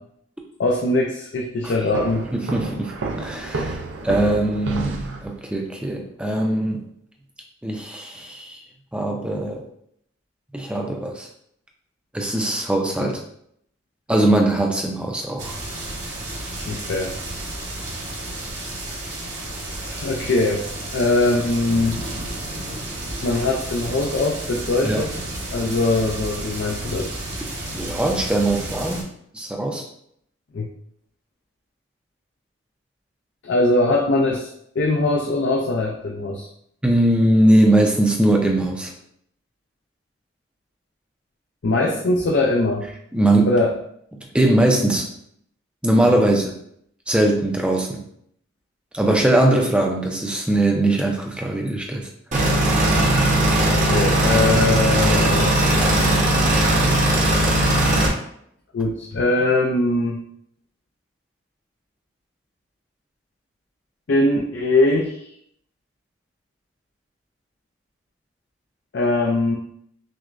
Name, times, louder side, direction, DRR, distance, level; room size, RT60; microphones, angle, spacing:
voice 1, 0.6-2.3 13.0-13.1 16.7-17.1 19.8-20.6 20.9-22.0 23.2-25.1 25.5-27.1 30.5-30.7 33.4-34.5 34.8-36.5 41.6-42.9 43.4-43.7 46.1-46.2 53.7-55.5 58.7-60.2 64.1-65.3 68.9-69.6, left 2 dB, 65° left, 0 dB, 0.4 m, -21 dB
sound 1, 1.9-5.6, right 3 dB, 75° right, 0.5 m, -30 dB
voice 2, 2.3-2.9 3.2-6.9 7.6-8.6 8.9-9.6 10.5-11.3 12.1-13.2 14.1-15.6 24.8-25.0 27.7-29.1 29.3-29.8 36.8-38.9 43.1-43.6 44.3-45.1 45.8-46.5 47.1-48.1 48.9-52.1, right 1 dB, 5° right, 1 dB, 0.4 m, -20 dB
sound 2, 15.4-29.0, right 1 dB, 60° right, 1.3 m, -32 dB
sound 3, 52.3-58.1, right 1 dB, 40° right, 0.8 m, -18 dB
6.1 x 2.1 x 2.5 m, 0.69 s
head